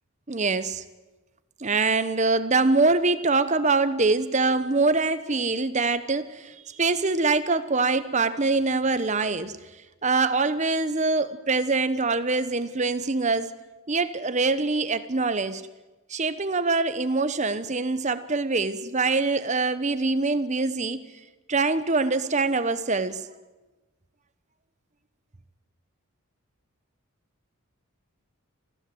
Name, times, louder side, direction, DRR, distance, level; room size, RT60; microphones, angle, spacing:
voice 1, 0.3-0.8 1.6-9.6 10.0-13.5 13.9-15.6 16.1-21.0 21.5-23.2, right 3 dB, 30° right, 13 dB, 1.0 m, -24 dB
28.0 x 15.5 x 7.9 m, 1.1 s
head